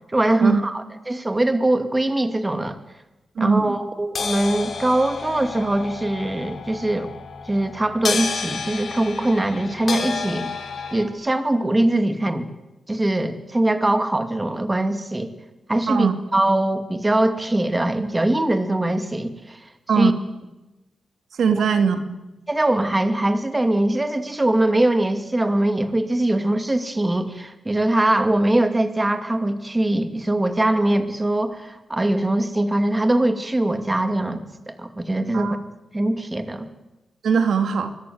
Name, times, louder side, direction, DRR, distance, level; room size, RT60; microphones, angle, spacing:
voice 1, 0.1-2.8 3.4-7.1 7.5-10.5 10.9-12.5 12.9-15.3 15.7-19.6 20.0-20.1 21.5-21.6 22.5-35.6 35.9-36.7, right 1 dB, 15° right, 8 dB, 2.4 m, -22 dB
voice 2, 3.4-3.8 15.9-16.1 19.9-20.1 21.4-22.0 35.3-35.6 37.2-37.9, right 6 dB, 70° right, 8 dB, 2.4 m, -20 dB
sound 1, 4.2-11.1, left 5 dB, 55° left, 4.6 m, -30 dB
24.5 x 22.5 x 9.5 m, 1.0 s
cardioid pair, 105°, 0 cm